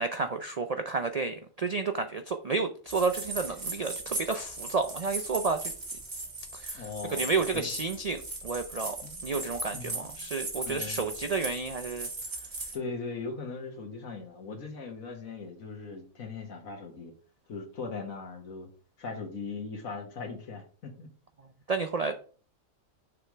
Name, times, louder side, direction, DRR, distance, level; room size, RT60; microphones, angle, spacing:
voice 1, 0.0-5.6 6.5-6.8 7.1-9.0 9.2-12.1 21.7-22.3, right 4 dB, 70° right, 7 dB, 0.3 m, -31 dB
sound 1, 2.9-12.8, right 2 dB, 30° right, 1.6 m, -38 dB
voice 2, 6.7-7.7 9.0-10.3 10.6-11.1 12.7-17.1 17.5-18.7 19.0-21.1, left 4 dB, 80° left, 2 dB, 1.9 m, -40 dB
6.9 x 3.3 x 6.0 m, 0.41 s
omnidirectional pair, 1.4 m